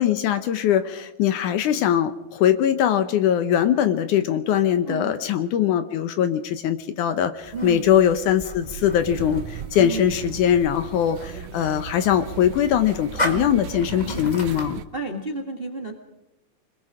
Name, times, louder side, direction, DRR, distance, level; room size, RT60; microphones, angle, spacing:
voice 1, 0.0-14.8, left 10 dB, 70° left, 11 dB, 2.2 m, -21 dB
voice 2, 4.8-5.1 7.5-7.9 9.8-10.1 13.2-13.5 14.9-16.0, right 4 dB, 30° right, 4 dB, 1.0 m, -31 dB
sound 1, 7.4-14.8, left 1 dB, 50° left, 0.5 m, -35 dB
sound 2, 8.6-14.9, right 9 dB, 75° right, 1.6 m, -37 dB
25.5 x 21.0 x 4.9 m, 0.94 s
omnidirectional pair, 4.0 m